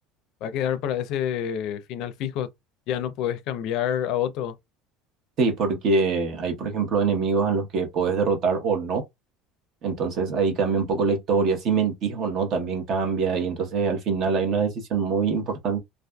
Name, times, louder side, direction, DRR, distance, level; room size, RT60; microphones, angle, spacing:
voice 1, 0.4-2.5 2.9-4.5, left 10 dB, 60° left, 0.4 m, -27 dB
voice 2, 5.4-9.0 9.8-15.8, right 5 dB, 45° right, 0.9 m, -24 dB
2.5 x 2.3 x 2.2 m
cardioid pair, 130°, 0 cm